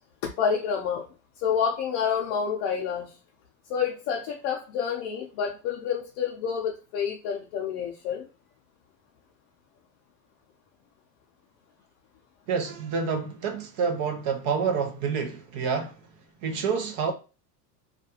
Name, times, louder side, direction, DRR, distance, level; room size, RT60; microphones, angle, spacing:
voice 1, 0.4-1.0 1.4-3.1 3.7-8.3, left 7 dB, 45° left, 0.5 m, -28 dB
voice 2, 12.5-16.0 16.4-17.1, right 5 dB, 45° right, 0.6 m, -28 dB
2.4 x 2.2 x 2.8 m
supercardioid pair, 120°, 49 cm